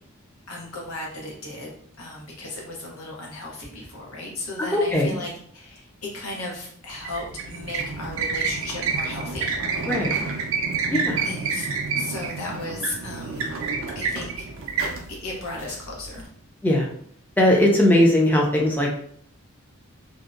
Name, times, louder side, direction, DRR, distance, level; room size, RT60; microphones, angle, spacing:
voice 1, 0.5-9.5 11.2-11.7 12.0-13.5 13.9-14.7 15.1-16.3, left 2 dB, 80° left, -2 dB, 0.8 m, -35 dB
voice 2, 4.6-5.2 9.9-10.2 10.9-11.3 16.6-16.9 17.4-18.9, left 1 dB, 10° left, -1 dB, 0.4 m, -19 dB
sound 1, 6.9-16.2, right 5 dB, 70° right, 0.4 m, -29 dB
2.6 x 2.0 x 2.4 m, 0.63 s
head